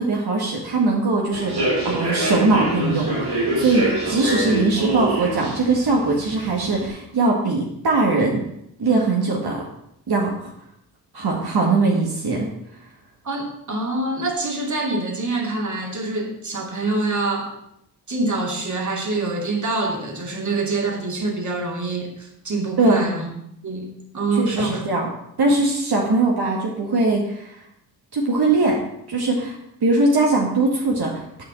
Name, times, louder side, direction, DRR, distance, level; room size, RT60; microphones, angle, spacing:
voice 1, 0.0-1.6 1.8-8.4 8.8-9.6 10.1-10.4 11.1-12.5 22.8-23.1 24.4-25.1 25.4-27.6 28.1-28.8 29.1-31.4, right 3 dB, 75° right, -2 dB, 2.1 m, -21 dB
Human voice / Subway metro underground, 1.3-6.9, right 1 dB, 90° right, 4.4 m, -25 dB
voice 2, 13.2-17.5 18.1-23.3 23.6-24.9 26.1-26.2, right 2 dB, 50° right, 0 dB, 2.5 m, -25 dB
10.0 x 5.1 x 7.7 m, 0.76 s
wide cardioid pair, 85°, 39 cm